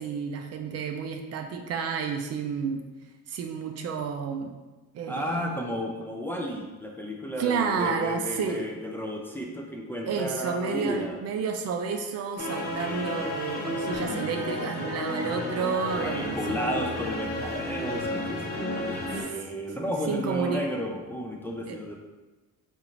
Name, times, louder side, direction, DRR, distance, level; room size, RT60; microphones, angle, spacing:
voice 1, 0.0-2.8 3.3-4.5 4.9-5.4 7.4-8.6 10.1-16.9 20.1-20.6 21.7-21.8, right 6 dB, 50° right, 4 dB, 0.4 m, -30 dB
voice 2, 5.1-11.2 16.0-22.0, equal, 5° left, -1 dB, 0.4 m, -33 dB
sound 1, 12.4-19.2, left 1 dB, 30° left, 0.7 m, -32 dB
3.7 x 2.6 x 2.9 m, 1.2 s
cardioid pair, 95°, 32 cm